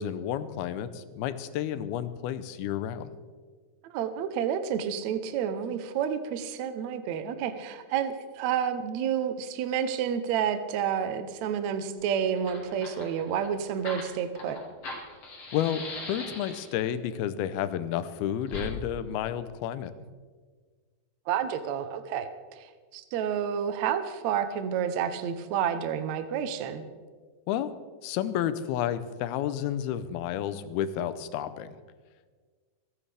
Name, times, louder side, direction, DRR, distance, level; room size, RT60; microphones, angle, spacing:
voice 1, 0.0-3.1 15.5-19.9 27.5-27.7 28.0-31.7, left 10 dB, 85° left, 13 dB, 2.6 m, -31 dB
voice 2, 3.9-14.6 21.3-22.3 22.6-26.8, right 8 dB, 75° right, 9 dB, 1.6 m, -30 dB
Fire, 12.0-12.1 12.3-16.9 18.5-18.7, left 2 dB, 45° left, 3.1 m, -40 dB
28.0 x 9.8 x 3.4 m, 1.5 s
omnidirectional pair, 4.3 m